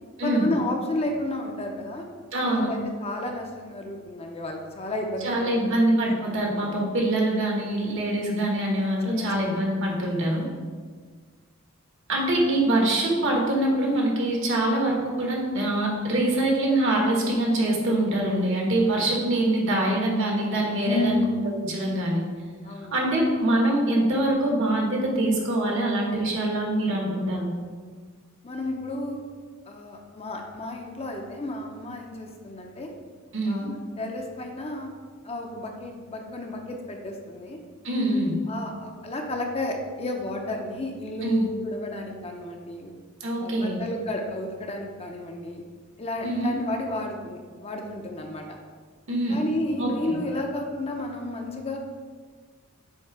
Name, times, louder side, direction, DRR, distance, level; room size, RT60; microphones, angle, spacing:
voice 1, 0.2-2.1 2.5-5.5 9.0-9.3 20.8-21.4 22.6-22.9 28.4-29.2 29.7-32.9 33.4-34.9 35.2-37.6 38.5-42.9 43.4-45.6 46.0-48.6 49.3-51.8, left 1 dB, 30° left, 2 dB, 0.6 m, -32 dB
voice 2, 2.3-2.7 5.2-10.4 12.1-21.2 21.6-22.2 22.9-27.5 33.3-33.7 37.8-38.3 41.2-41.5 43.2-43.8 46.2-46.5 49.1-49.4 49.8-49.9, right 1 dB, 60° right, -1 dB, 1.3 m, -24 dB
7.1 x 2.9 x 4.7 m, 1.6 s
head